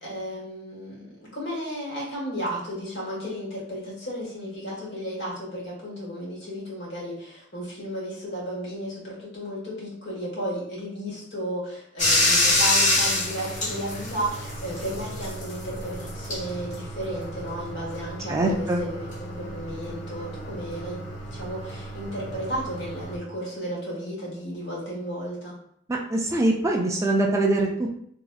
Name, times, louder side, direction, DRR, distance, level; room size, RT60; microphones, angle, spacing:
voice 1, 0.0-25.5, equal, 60° left, -5 dB, 1.4 m, -33 dB
Bathtub (filling or washing), 12.0-23.2, left 1 dB, 40° left, 0.9 m, -28 dB
voice 2, 18.3-18.8 25.9-28.0, right 2 dB, 15° right, 0 dB, 0.3 m, -23 dB
3.0 x 2.8 x 2.3 m, 0.69 s
head